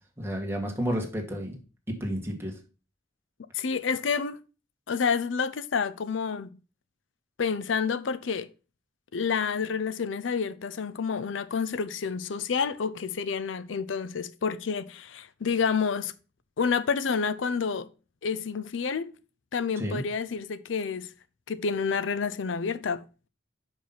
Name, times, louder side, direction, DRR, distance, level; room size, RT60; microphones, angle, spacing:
voice 1, 0.2-1.6 1.9-2.5 19.8-20.0, equal, 15° right, 1.6 m, -31 dB
voice 2, 3.5-4.4 4.9-6.6 7.4-8.5 9.1-16.1 16.6-17.9 18.2-19.1 19.5-21.1 21.5-23.3, left 5 dB, 80° left, 0.5 m, -29 dB
5.4 x 5.2 x 5.7 m
head